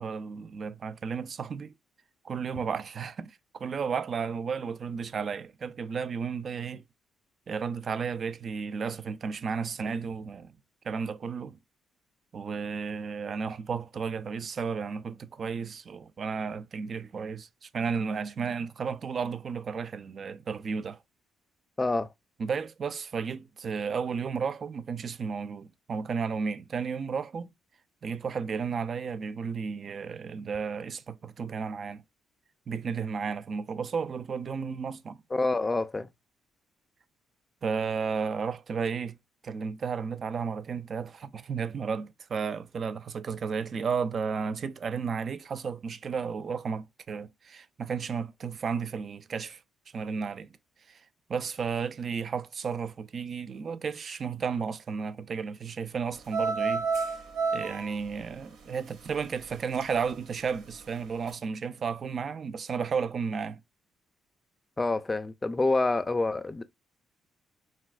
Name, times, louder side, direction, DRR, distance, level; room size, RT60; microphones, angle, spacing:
voice 1, 0.0-1.7 2.2-6.8 7.5-10.6 10.8-11.6 12.3-21.0 22.4-27.5 28.0-32.0 32.7-35.2 37.6-39.2 39.4-49.6 49.9-50.6 50.9-51.0 51.3-56.9 57.5-63.6, right 5 dB, 50° right, 0.3 m, -33 dB
voice 2, 21.8-22.1 35.3-36.1 64.8-66.6, left 2 dB, 20° left, 0.4 m, -27 dB
sound 1, 56.2-60.1 60.4-60.9 61.3-61.4, right 4 dB, 85° right, 0.6 m, -31 dB
3.3 x 2.7 x 2.3 m
cardioid pair, 90°, 0 cm